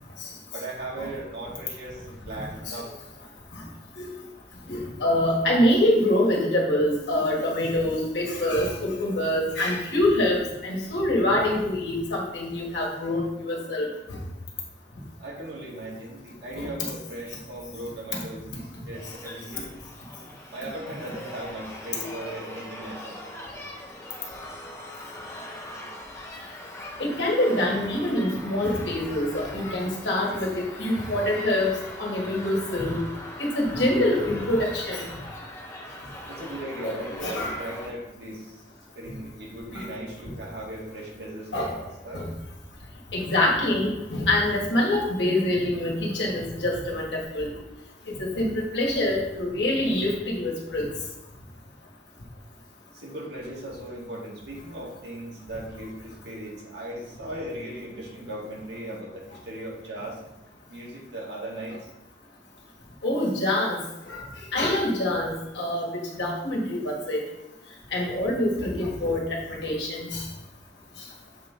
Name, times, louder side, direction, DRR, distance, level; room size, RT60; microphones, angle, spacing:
voice 1, 0.5-3.0 15.2-19.7 20.5-23.2 36.3-38.6 39.0-42.2 52.9-60.2 60.7-61.9 67.7-67.8, right 1 dB, 65° right, -5 dB, 2.0 m, -38 dB
voice 2, 4.7-14.2 16.6-16.7 22.0-22.1 27.0-33.0 33.4-35.1 36.8-37.5 39.7-39.9 41.5-41.7 42.1-42.2 43.1-47.5 48.1-50.8 63.0-63.8 64.1-64.2 64.5-65.9 66.2-67.2 67.9-69.2 69.5-70.2, left 1 dB, 65° left, -2 dB, 1.6 m, -25 dB
sound 1, 18.9-37.9, left 1 dB, 15° left, 0.9 m, -41 dB
7.3 x 3.9 x 3.8 m, 0.95 s
head